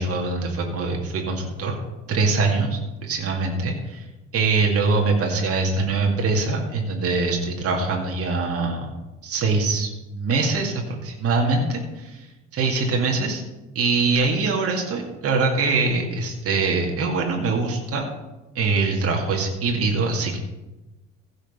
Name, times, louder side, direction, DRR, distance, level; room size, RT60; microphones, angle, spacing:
voice 1, 0.0-1.8 2.1-4.0 4.3-8.9 9.2-12.2 12.5-13.4 13.8-18.1 18.6-20.4, right 3 dB, 40° right, 0 dB, 2.2 m, -23 dB
15.5 x 5.3 x 5.5 m, 1.0 s
figure-of-eight pair, 60°, 36 cm